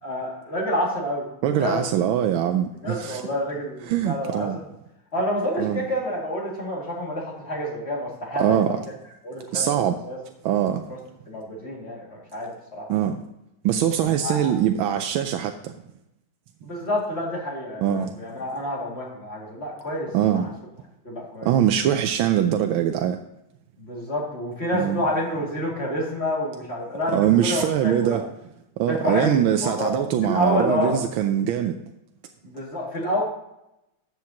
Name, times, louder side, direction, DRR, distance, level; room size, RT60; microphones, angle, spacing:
voice 1, 0.0-1.8 2.8-4.6 5.1-8.8 9.2-10.2 10.9-11.0 11.3-12.9 14.2-14.5 16.6-20.5 21.0-21.5 23.8-28.2 28.9-31.0 32.4-33.2, left 1 dB, 30° left, 2.5 m, -28 dB
voice 2, 1.4-3.2 3.9-4.6 5.6-5.9 8.4-8.8 9.5-10.0 10.4-10.8 12.9-13.2 13.6-15.8 17.8-18.1 20.1-20.5 21.4-23.2 24.7-25.0 27.1-28.3 28.8-31.8, right 10 dB, 85° right, 1.4 m, -22 dB
13.0 x 7.7 x 2.8 m
omnidirectional pair, 2.2 m